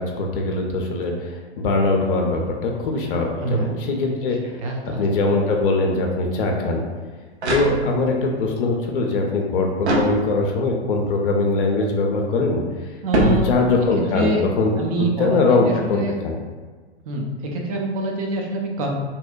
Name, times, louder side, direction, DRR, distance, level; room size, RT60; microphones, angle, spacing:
voice 1, 0.0-4.6 5.0-6.8 7.5-12.6 13.1-14.8 15.2-16.4, left 3 dB, 55° left, 1 dB, 0.4 m, -21 dB
voice 2, 3.4-3.7 4.6-5.0 13.0-13.5 14.1-14.4 14.8-16.2 17.1-18.9, right 3 dB, 35° right, 1 dB, 0.4 m, -25 dB
sound 1, 6.9-8.3 9.8-10.7 13.1-14.0, right 1 dB, 70° right, 0.6 m, -24 dB
2.7 x 2.1 x 2.3 m, 1.4 s
figure-of-eight pair, 105°, 34 cm